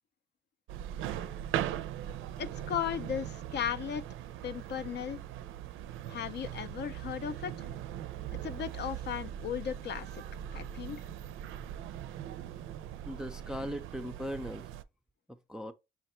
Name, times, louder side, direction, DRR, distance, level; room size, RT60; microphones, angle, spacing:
sound 1, 0.7-14.8, right 11 dB, 85° right, 0.4 m, -40 dB
voice 1, 2.4-4.0 4.4-5.2 6.1-7.7 8.4-10.2 10.5-11.0, left 9 dB, 60° left, 0.5 m, -36 dB
voice 2, 13.1-14.6 15.5-15.7, equal, 5° right, 0.4 m, -38 dB
5.7 x 2.2 x 4.2 m
cardioid pair, 90°, 20 cm